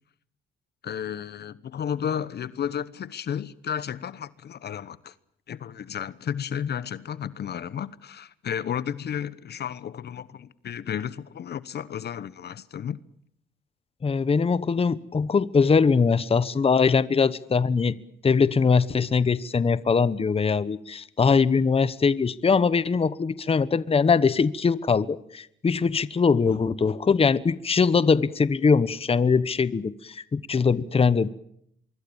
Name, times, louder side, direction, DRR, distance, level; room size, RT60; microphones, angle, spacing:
voice 1, 0.8-5.1 5.5-13.0, left 8 dB, 55° left, 1.0 m, -32 dB
voice 2, 14.0-17.9 18.2-31.3, left 5 dB, 30° left, 1.0 m, -22 dB
25.5 x 23.0 x 7.2 m
cardioid pair, 90°, 20 cm